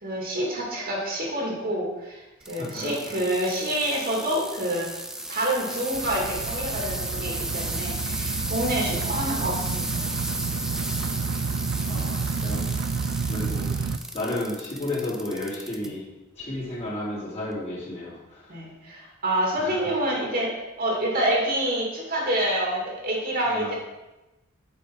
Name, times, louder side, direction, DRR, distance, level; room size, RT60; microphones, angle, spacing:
voice 1, 0.0-2.2 2.5-4.9 5.3-10.1 18.5-20.5 20.8-23.7, right 1 dB, 45° right, -3 dB, 2.5 m, -27 dB
sound 1, 2.4-15.9 16.4-16.9 17.5-17.6, right 1 dB, 5° right, 0.5 m, -34 dB
voice 2, 2.6-3.2 11.8-12.6 13.3-13.7 14.1-16.0 16.4-18.6 19.6-19.9 23.5-23.7, left 1 dB, 30° left, -8 dB, 3.1 m, -33 dB
sound 2, 5.9-14.0, right 5 dB, 70° right, 0.4 m, -30 dB
7.7 x 5.6 x 4.7 m, 1.0 s
head